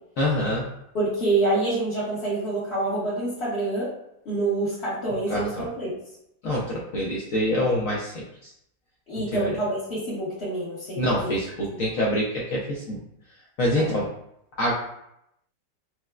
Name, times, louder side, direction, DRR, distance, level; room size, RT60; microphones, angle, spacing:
voice 1, 0.2-0.7 5.3-5.6 6.4-8.5 9.4-9.6 11.0-13.0 13.6-14.1 14.6-14.7, left 1 dB, 85° left, -5 dB, 0.7 m, -25 dB
voice 2, 0.9-3.9 4.2-5.9 9.1-11.3 11.7-11.8 13.8-13.9, right 2 dB, 45° left, -11 dB, 0.9 m, -27 dB
4.5 x 2.0 x 2.3 m, 0.79 s
omnidirectional pair, 2.0 m